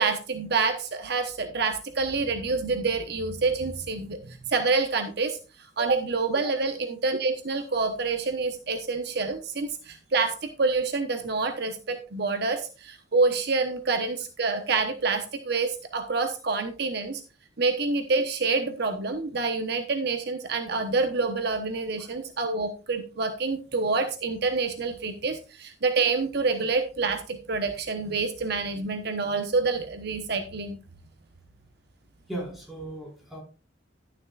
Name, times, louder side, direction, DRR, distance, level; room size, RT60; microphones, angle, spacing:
voice 1, 0.0-5.4 5.8-17.2 17.6-30.8, right 4 dB, 60° right, 6 dB, 1.0 m, -27 dB
voice 2, 32.3-33.4, right 1 dB, ahead, -3 dB, 4.7 m, -37 dB
12.0 x 10.5 x 2.4 m, 0.33 s
head